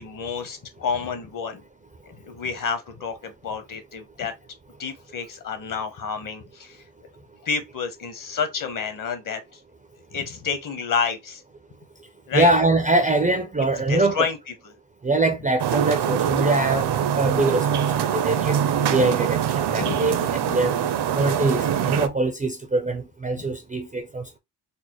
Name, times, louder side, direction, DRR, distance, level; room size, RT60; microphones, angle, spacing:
voice 1, 0.0-1.6 2.0-4.3 4.8-6.8 7.4-9.6 10.1-11.4 12.3-12.5 13.9-14.4 14.6-14.7 19.7-20.6 23.4-23.5, left 6 dB, 50° left, 0.9 m, -29 dB
voice 2, 12.3-14.3 15.0-18.6 18.9-20.2 20.5-20.8 21.1-24.4, right 2 dB, 20° right, 0.3 m, -23 dB
sound 1, 15.6-22.1, right 9 dB, 65° right, 0.6 m, -23 dB
4.1 x 2.1 x 2.9 m
wide cardioid pair, 160°, 44 cm